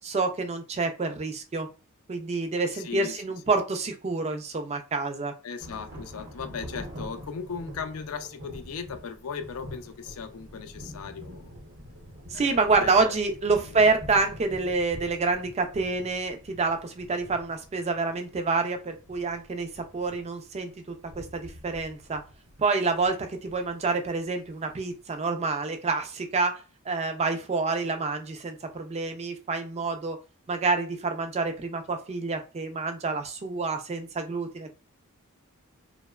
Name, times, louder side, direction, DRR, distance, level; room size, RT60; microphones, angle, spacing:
voice 1, 0.0-1.7 2.1-5.3 12.3-22.2 22.6-26.6 26.9-30.2 30.5-34.7, right 3 dB, 30° right, 0.4 m, -27 dB
voice 2, 2.7-3.2 5.4-11.5 12.3-13.2 13.6-13.8, left 6 dB, 65° left, 0.4 m, -38 dB
sound 1, 5.6-25.2, equal, 55° right, 0.7 m, -46 dB
2.8 x 2.0 x 2.3 m
head